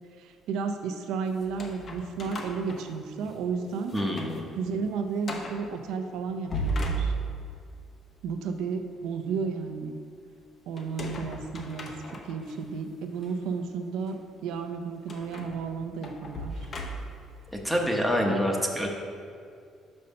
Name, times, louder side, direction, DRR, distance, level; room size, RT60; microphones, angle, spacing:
voice 1, 0.2-3.9 4.5-7.1 8.2-10.0 10.7-16.5, right 5 dB, 85° right, 7 dB, 0.6 m, -33 dB
sound 1, 1.4-3.4 3.8-4.4 4.7-4.8 5.2-5.6 6.3-7.6 10.8-12.5 13.2-13.3 15.1-17.3, right 1 dB, 40° left, 0.9 m, -35 dB
voice 2, 3.9-4.4 17.5-18.9, equal, ahead, 0 dB, 0.8 m, -26 dB
5.6 x 5.4 x 5.3 m, 2.3 s
cardioid pair, 110°, 0 cm